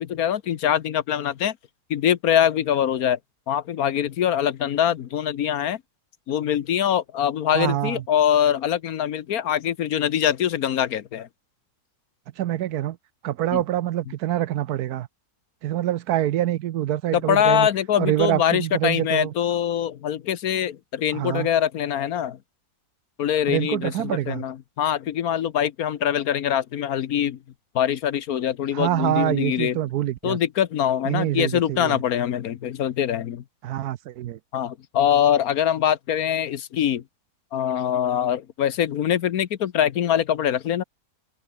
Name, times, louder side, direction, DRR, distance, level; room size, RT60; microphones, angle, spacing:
voice 1, 0.0-1.6 1.9-3.2 3.5-5.8 6.3-11.3 13.5-13.6 17.1-22.4 23.2-27.4 27.7-29.8 30.2-33.4 34.5-37.0 37.5-40.8, left 10 dB, 65° left, 1.3 m, -23 dB
voice 2, 7.5-8.0 12.4-13.0 13.2-15.1 15.6-17.7 18.0-19.3 21.1-21.5 23.5-24.4 28.7-30.4 31.0-32.0 33.6-34.4, right 13 dB, 70° right, 1.1 m, -25 dB
omnidirectional pair, 1.7 m